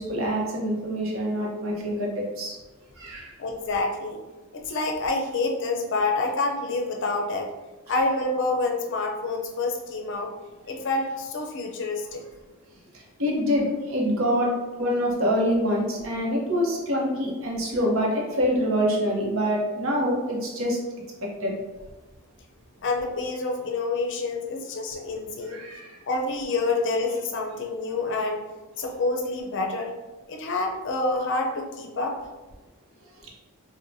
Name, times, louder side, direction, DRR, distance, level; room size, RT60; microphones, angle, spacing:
voice 1, 0.0-2.1 2.4-2.6 3.0-3.3 12.9-14.5 14.8-20.8 21.2-21.6 25.5-26.0, equal, 60° right, -2 dB, 0.8 m, -25 dB
voice 2, 3.4-4.2 4.5-7.5 7.9-10.3 10.7-12.2 22.8-25.6 26.1-28.4 28.8-30.0 30.3-32.2, left 3 dB, 55° left, 2 dB, 0.5 m, -27 dB
4.6 x 2.1 x 2.6 m, 1.2 s
head